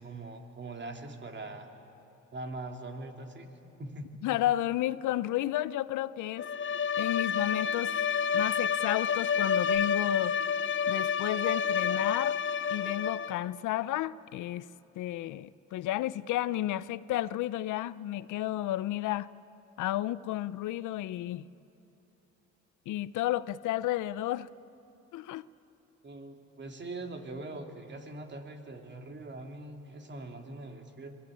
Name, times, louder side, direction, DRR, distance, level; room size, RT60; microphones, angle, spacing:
voice 1, 0.0-1.7 2.3-3.5 3.8-4.1 26.0-31.2, right 2 dB, 35° right, 4 dB, 2.9 m, -42 dB
voice 2, 4.2-6.5 7.0-8.0 8.3-10.4 10.9-12.4 12.7-14.7 15.0-19.3 19.8-21.5 22.9-24.5 25.1-25.5, left 14 dB, 80° left, 18 dB, 0.6 m, -32 dB
Bowed string instrument, 6.4-13.5, left 7 dB, 40° left, 0.7 m, -29 dB
26.5 x 19.5 x 10.0 m, 2.8 s
cardioid pair, 90°, 30 cm